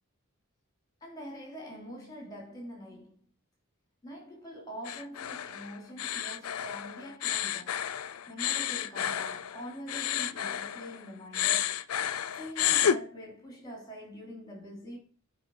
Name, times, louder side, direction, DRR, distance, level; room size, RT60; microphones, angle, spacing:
voice 1, 1.0-3.2 4.0-7.8 8.0-11.6 12.3-15.0, equal, 15° left, 3.2 m, -44 dB
sound 1, 4.9-11.0 11.3-13.0, left 10 dB, 85° left, 0.5 m, -31 dB
8.8 x 4.8 x 4.8 m
head